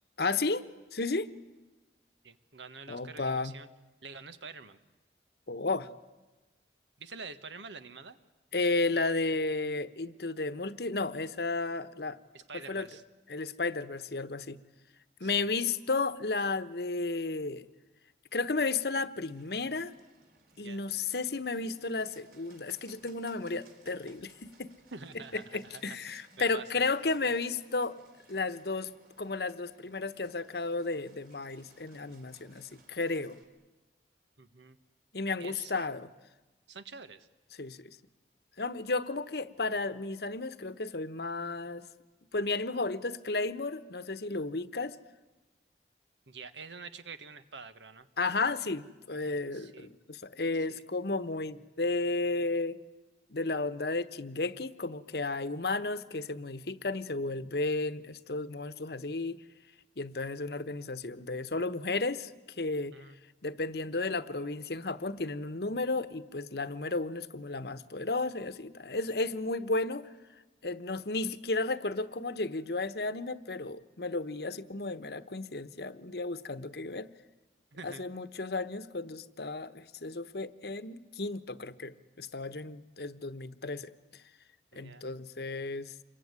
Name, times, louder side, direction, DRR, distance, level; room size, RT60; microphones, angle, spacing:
voice 1, 0.2-0.6 0.9-1.3 2.9-3.6 5.5-5.9 8.5-12.2 12.7-12.9 13.3-14.6 15.2-17.7 18.3-19.9 20.6-24.7 25.3-28.0 28.3-28.9 29.2-33.4 35.1-36.1 37.6-38.0 38.6-41.9 42.3-45.0 48.2-52.8 53.3-59.4 60.0-62.3 62.6-62.9 63.4-70.1 70.6-77.1 77.8-83.9 84.7-85.9, left 3 dB, 65° left, 14 dB, 1.1 m, -33 dB
voice 2, 2.2-3.7 4.0-4.8 7.0-8.2 12.3-13.0 15.2-15.5 20.6-20.8 24.9-27.1 34.4-34.8 35.4-36.0 36.7-37.3 46.3-48.1 49.5-49.9 50.5-50.8 62.9-63.2 77.7-78.0 84.7-85.0, right 4 dB, 90° right, 12 dB, 1.5 m, -47 dB
Bird, 19.2-33.4, right 3 dB, 55° right, 4.3 m, -63 dB
27.0 x 22.5 x 9.7 m, 1.2 s
head